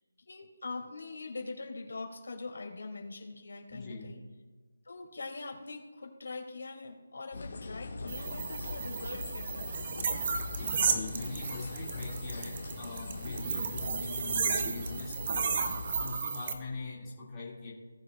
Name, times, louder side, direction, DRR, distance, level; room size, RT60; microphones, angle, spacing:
voice 1, 0.3-4.2 4.8-10.0, left 3 dB, 75° left, 1 dB, 3.1 m, -43 dB
voice 2, 3.7-4.1 10.5-15.6 16.0-17.7, left 3 dB, 15° left, -8 dB, 2.4 m, -42 dB
sound 1, 7.3-16.2, left 3 dB, 50° left, 1.8 m, -41 dB
sound 2, 8.1-16.5, right 5 dB, 30° right, 0.8 m, -34 dB
19.0 x 6.4 x 2.5 m, 1.4 s
hypercardioid pair, 175°, 0 cm